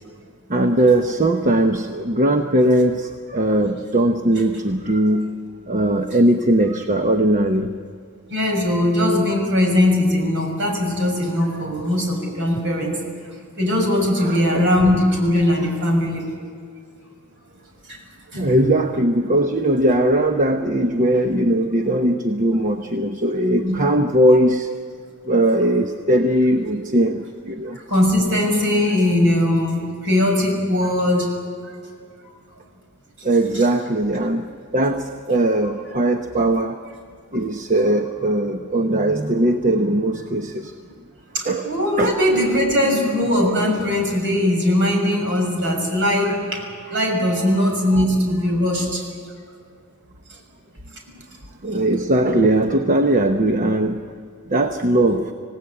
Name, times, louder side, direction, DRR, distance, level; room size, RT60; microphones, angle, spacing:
voice 1, 0.5-5.3 5.7-7.7 14.2-14.6 18.4-24.7 25.3-27.8 33.2-36.8 37.3-40.7 41.4-42.2 47.9-48.0 51.6-54.0 54.5-55.3, right 1 dB, 35° right, 5 dB, 1.0 m, -19 dB
voice 2, 8.3-13.0 13.6-16.3 17.9-18.0 18.3-18.5 23.6-23.8 27.7-31.3 31.7-31.8 33.5-33.6 41.3-46.6 46.9-49.0 51.7-51.8, left 1 dB, 60° right, 2 dB, 6.5 m, -20 dB
26.5 x 18.0 x 8.6 m, 2.1 s
head